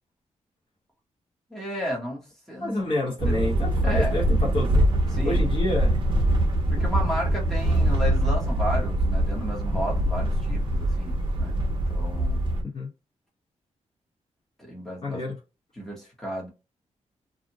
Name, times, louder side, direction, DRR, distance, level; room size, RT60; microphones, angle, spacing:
voice 1, 1.5-3.0 3.3-3.4 3.8-4.2 5.1-5.4 6.7-11.5 11.9-12.5 14.6-15.2 15.8-16.5, equal, 5° left, 0.8 m, -33 dB
voice 2, 2.6-4.3 4.5-4.8 5.2-5.9 12.7-12.9 15.0-15.4, left 1 dB, 45° left, 1.1 m, -28 dB
sound 1, 3.2-12.6, right 1 dB, 40° right, 0.6 m, -23 dB
2.5 x 2.1 x 2.8 m
wide cardioid pair, 170°, 12 cm